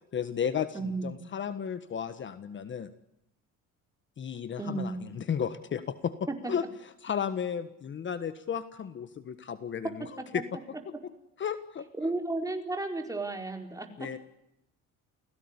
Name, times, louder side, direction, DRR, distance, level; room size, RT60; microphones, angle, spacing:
voice 1, 0.1-2.9 4.2-6.1 6.5-6.6 7.0-10.1 10.3-10.4 11.4-11.9 14.0-14.2, left 8 dB, 35° left, 12 dB, 1.5 m, -33 dB
voice 2, 0.7-1.1 4.6-5.0 6.4-6.5 10.3-10.4 12.0-14.2, right 2 dB, 10° right, 5 dB, 4.6 m, -33 dB
30.0 x 17.5 x 9.9 m, 0.85 s
cardioid pair, 145°, 32 cm